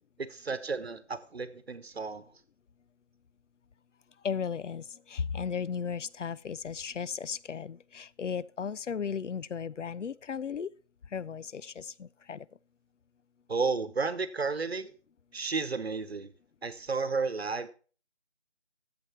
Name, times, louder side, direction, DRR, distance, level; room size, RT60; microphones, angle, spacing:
voice 1, 0.2-2.2 13.5-14.9 15.3-16.3 16.6-17.7, right 4 dB, 60° right, 1.0 m, -32 dB
voice 2, 4.2-10.7 11.1-12.5, left 6 dB, 85° left, 0.6 m, -35 dB
11.5 x 7.8 x 4.4 m
figure-of-eight pair, 170°, 35 cm